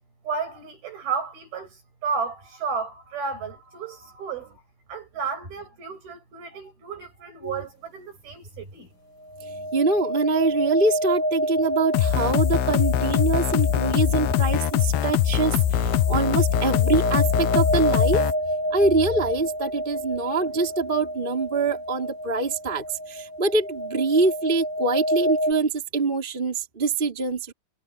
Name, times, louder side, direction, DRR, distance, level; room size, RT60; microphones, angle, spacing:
voice 1, 0.2-4.6 4.9-8.9, right 5 dB, 60° right, 9.3 m, -33 dB
sound 1, 7.4-7.6 9.2-25.5, equal, 30° left, 4.6 m, -29 dB
voice 2, 9.4-18.3 18.6-27.5, right 3 dB, 10° right, 3.5 m, -24 dB
sound 2, 11.9-18.3, left 11 dB, 70° left, 2.6 m, -22 dB
omnidirectional pair, 4.9 m